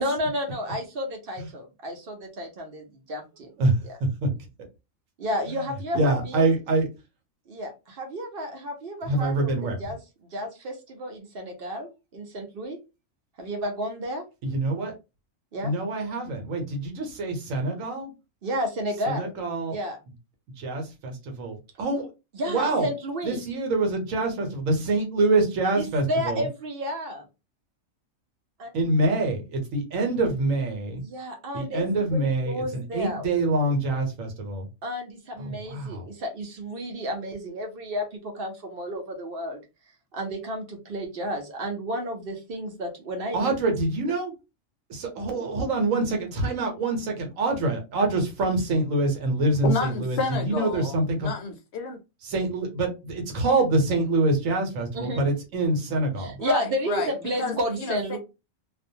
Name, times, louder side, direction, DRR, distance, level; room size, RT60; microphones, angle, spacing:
voice 1, 0.0-3.5 5.2-6.5 7.5-9.5 9.8-10.0 10.3-12.8 13.4-14.2 15.5-15.7 18.4-19.3 19.7-20.0 22.3-23.4 25.8-27.3 28.6-28.7 31.0-33.3 34.8-39.6 40.1-43.5 54.9-55.2 56.2-58.2, equal, 50° right, 0.8 m, -31 dB
voice 2, 3.6-4.5 5.5-5.6 5.9-6.9 9.0-9.8 14.4-14.9 15.6-18.1 19.1-19.8 20.6-22.1 22.5-22.9 23.2-26.5 28.7-31.0 31.5-34.7 35.4-36.1 43.3-44.3 44.9-51.3 52.2-56.4, right 2 dB, 80° right, 1.2 m, -25 dB
voice 3, 49.6-51.0 51.2-52.0 56.4-57.1 57.4-58.2, left 5 dB, 65° left, 0.7 m, -30 dB
2.5 x 2.2 x 2.6 m
omnidirectional pair, 1.4 m